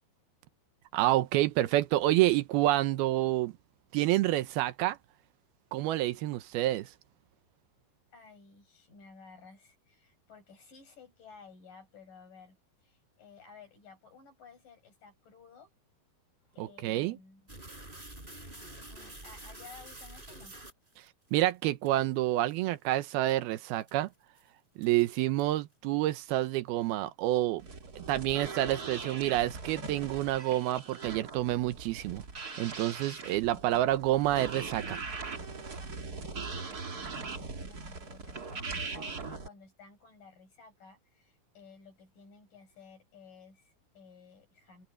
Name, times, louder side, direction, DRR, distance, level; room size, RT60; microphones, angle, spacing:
voice 1, 0.9-3.5 3.9-5.0 5.7-6.9 16.6-17.2 21.3-24.1 24.8-27.7 28.0-32.2 32.6-35.0, right 15 dB, 80° right, 2.7 m, -28 dB
voice 2, 8.1-15.7 16.5-17.5 18.4-20.6 35.8-44.9, left 5 dB, 60° left, 9.5 m, -55 dB
sound 1, 17.5-21.4 21.9-22.0 22.5-22.6 23.0-23.3 23.8-24.1 24.4-24.5 24.8-25.6, right 1 dB, 10° right, 5.0 m, -47 dB
sound 2, 27.6-39.5, right 4 dB, 30° right, 2.0 m, -40 dB
omnidirectional pair, 4.4 m